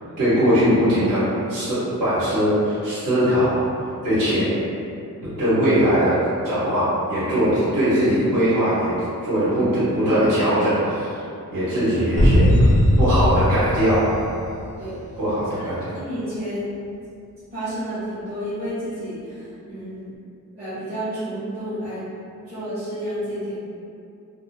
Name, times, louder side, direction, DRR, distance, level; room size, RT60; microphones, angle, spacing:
voice 1, 0.2-1.2 1.5-3.6 4.0-4.5 5.4-6.1 6.4-8.9 9.2-11.2 11.5-12.7 13.0-14.1 15.2-15.9, equal, 75° right, -13 dB, 1.4 m, -20 dB
sound 1, 12.2-14.9, equal, 25° left, 0.3 m, -18 dB
voice 2, 15.6-16.6 17.5-20.1 20.5-22.0 22.5-23.6, equal, 30° right, -16 dB, 0.9 m, -31 dB
2.7 x 2.0 x 2.7 m, 2.6 s
wide cardioid pair, 175°, 32 cm